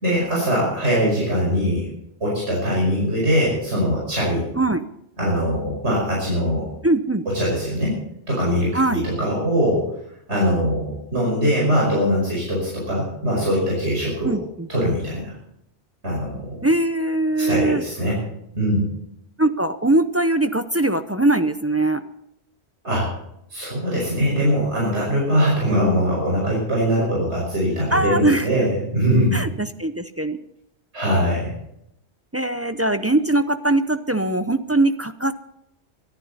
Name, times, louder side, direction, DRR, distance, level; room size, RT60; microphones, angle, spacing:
voice 1, 0.0-1.9 2.2-4.5 5.2-6.7 7.3-8.0 8.3-9.9 10.3-14.4 14.7-15.3 16.0-16.6 17.4-18.2 18.5-18.9 22.8-23.1 23.5-29.4 30.9-31.5, equal, 80° right, -5 dB, 5.7 m, -22 dB
voice 2, 6.8-7.2 8.7-9.0 14.2-14.4 16.6-17.8 19.4-22.0 27.9-28.4 29.3-30.4 32.3-35.3, right 2 dB, 20° right, 10 dB, 0.4 m, -21 dB
23.5 x 11.5 x 4.1 m, 0.78 s
omnidirectional pair, 1.1 m